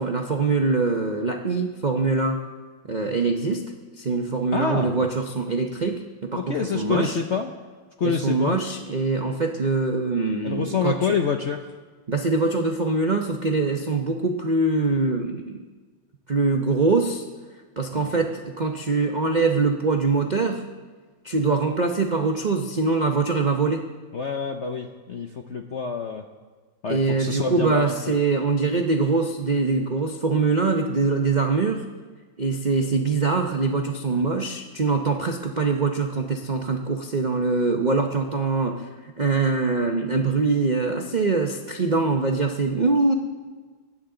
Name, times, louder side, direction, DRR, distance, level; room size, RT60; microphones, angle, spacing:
voice 1, 0.0-2.4 2.9-7.2 8.0-10.9 12.1-15.6 16.3-17.2 17.8-20.6 21.2-23.9 26.9-31.8 32.4-38.8 39.2-43.1, right 4 dB, 80° right, 3 dB, 0.4 m, -23 dB
voice 2, 4.5-4.9 6.4-7.5 8.0-8.6 10.4-11.6 17.9-18.3 24.1-26.2 26.8-28.2 34.1-34.2, left 5 dB, 65° left, 4 dB, 0.7 m, -27 dB
23.0 x 10.5 x 3.8 m, 1.4 s
omnidirectional pair, 2.2 m